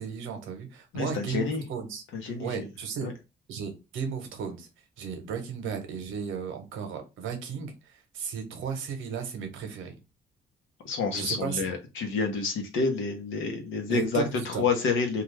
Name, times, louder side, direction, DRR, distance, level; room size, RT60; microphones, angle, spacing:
voice 1, 0.0-3.1 3.5-4.7 5.0-9.9 11.1-11.7 13.9-14.6, right 6 dB, 85° right, 0.8 m, -35 dB
voice 2, 0.9-1.6 2.1-2.7 3.0-3.1 10.8-15.2, left 4 dB, 80° left, 0.9 m, -29 dB
2.3 x 2.3 x 3.1 m
cardioid pair, 90°, 20 cm